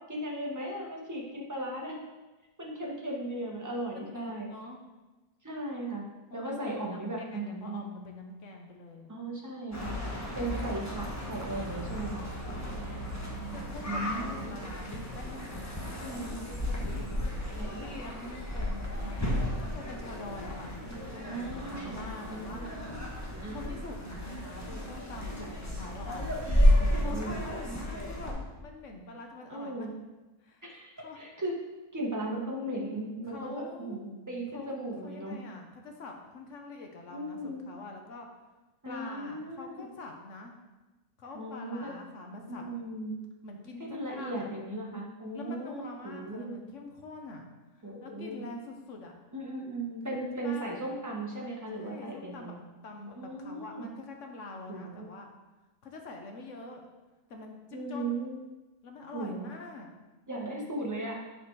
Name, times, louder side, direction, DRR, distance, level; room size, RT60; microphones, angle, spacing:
voice 1, 0.1-2.0 2.6-4.5 5.4-6.0 6.3-7.8 9.1-9.9 10.3-12.2 13.9-14.6 16.0-16.4 17.6-17.8 21.2-22.7 23.3-23.6 26.8-27.4 29.5-29.9 30.6-31.6 31.9-35.4 37.1-37.6 38.8-39.9 41.3-41.9 42.5-43.2 43.8-46.6 47.8-48.4 49.3-52.5 53.1-53.9 54.7-55.1 57.7-58.3 59.1-59.5 60.3-61.1, right 1 dB, 15° right, -2 dB, 1.2 m, -37 dB
voice 2, 3.9-4.8 6.3-9.1 10.0-10.1 12.5-13.2 13.5-16.1 16.6-17.3 17.8-19.3 19.6-22.7 23.5-26.3 27.0-29.9 30.4-30.6 31.0-31.2 33.3-34.0 34.5-34.7 35.0-38.3 38.9-40.6 41.2-42.6 43.4-44.5 45.3-47.5 47.8-49.2 50.0-50.8 51.7-52.6 52.8-55.3 55.8-56.8 57.3-58.1 58.8-59.9, left 2 dB, 60° left, 3 dB, 1.2 m, -45 dB
sound 1, 9.7-28.3, equal, 10° left, 1.1 m, -32 dB
8.4 x 4.3 x 4.7 m, 1.1 s
omnidirectional pair, 1.6 m